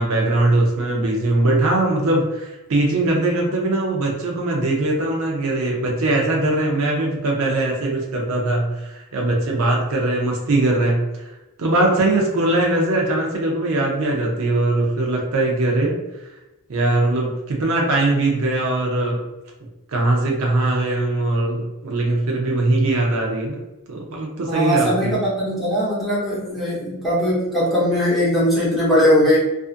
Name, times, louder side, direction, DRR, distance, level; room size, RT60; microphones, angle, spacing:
voice 1, 0.0-11.3 11.6-15.9 16.7-19.2 19.9-23.6 23.9-25.1, right 2 dB, 65° right, -1 dB, 0.5 m, -21 dB
voice 2, 24.5-29.4, equal, ahead, -9 dB, 0.9 m, -19 dB
2.5 x 2.4 x 2.4 m, 1.0 s
head